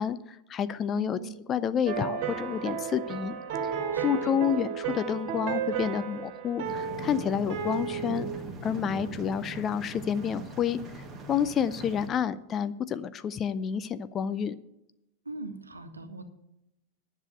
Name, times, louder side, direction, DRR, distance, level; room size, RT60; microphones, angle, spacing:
voice 1, 0.0-1.2 1.5-3.4 3.6-3.7 4.0-8.3 8.6-14.6, left 8 dB, 25° left, 14 dB, 0.5 m, -29 dB
voice 2, 1.0-1.4 3.9-4.3 15.2-16.2, right 2 dB, 80° right, 8 dB, 1.2 m, -40 dB
sound 1, 1.8-8.4, right 7 dB, 45° right, 2.2 m, -33 dB
sound 2, 6.6-12.1, right 3 dB, 20° right, 1.9 m, -40 dB
10.5 x 6.8 x 7.8 m, 0.87 s
figure-of-eight pair, 90°, 0 cm